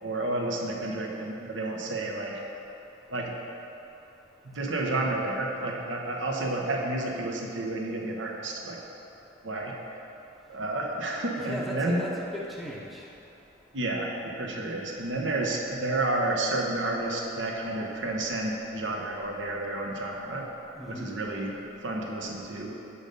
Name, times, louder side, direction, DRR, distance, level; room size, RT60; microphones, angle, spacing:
voice 1, 0.0-2.4 3.1-3.3 4.4-8.8 9.4-9.7 10.5-12.1 13.7-20.5 20.9-22.7, right 2 dB, 75° right, 0 dB, 1.0 m, -31 dB
voice 2, 11.4-13.1 20.7-21.1, equal, ahead, -4 dB, 0.7 m, -37 dB
8.4 x 5.3 x 5.3 m, 2.9 s
head